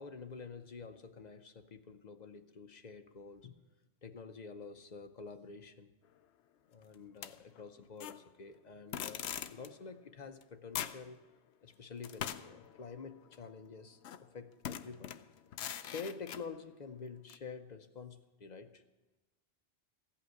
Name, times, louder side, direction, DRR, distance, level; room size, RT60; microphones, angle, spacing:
voice 1, 0.0-3.6 4.0-5.9 6.7-11.3 11.6-15.2 15.8-18.8, left 5 dB, 45° left, 8 dB, 0.7 m, -48 dB
sound 1, 7.2-8.2 8.9-9.7 10.4-10.5 10.7-11.1 12.0-13.5 14.0-14.2 14.6-16.5 17.3-17.4, left 10 dB, 80° left, 0.9 m, -42 dB
15.5 x 5.7 x 9.3 m, 1.1 s
omnidirectional pair, 1.1 m